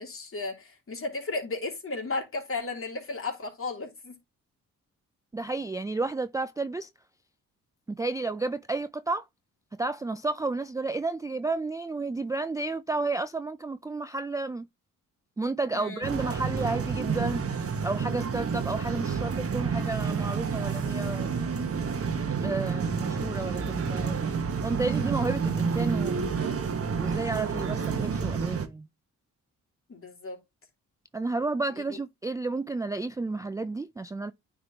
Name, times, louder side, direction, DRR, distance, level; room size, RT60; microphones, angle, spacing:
voice 1, 0.0-4.1 15.7-16.1 29.9-30.4 31.8-32.0, left 3 dB, 40° left, 2.9 m, -34 dB
voice 2, 5.3-6.9 7.9-9.2 9.8-14.7 15.4-21.3 22.4-24.2 24.6-26.3 27.0-28.9 31.1-34.3, right 3 dB, 10° right, 0.3 m, -31 dB
sound 1, 16.0-28.7, right 5 dB, 45° right, 1.2 m, -29 dB
9.5 x 3.8 x 2.8 m
cardioid pair, 75°, 32 cm